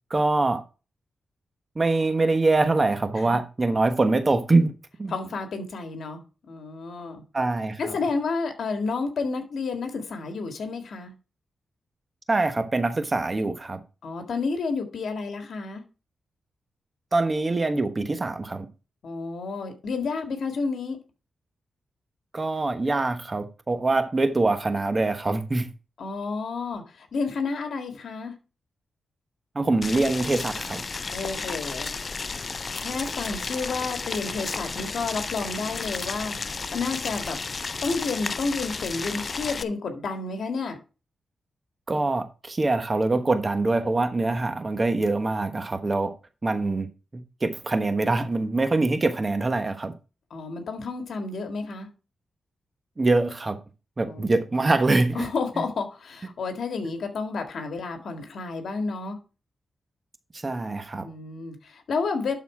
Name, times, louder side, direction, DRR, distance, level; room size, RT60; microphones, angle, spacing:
voice 1, 0.1-0.6 1.7-4.7 5.0-5.1 7.3-8.0 12.3-13.8 17.1-18.7 22.3-25.7 29.5-30.8 41.9-46.1 46.4-46.9 47.1-49.9 53.0-53.6 54.0-55.3 60.4-61.1, right 2 dB, 30° right, 1.1 m, -24 dB
voice 2, 5.1-7.2 7.8-11.1 14.0-15.8 19.0-21.0 26.0-28.3 31.1-31.9 32.8-37.4 37.8-40.8 50.3-51.9 54.1-54.3 55.1-59.2 61.0-62.4, left 4 dB, 75° left, 1.8 m, -31 dB
Boiling, 29.8-39.6, left 4 dB, 40° left, 0.4 m, -33 dB
11.5 x 4.1 x 4.8 m
cardioid pair, 85°, 0 cm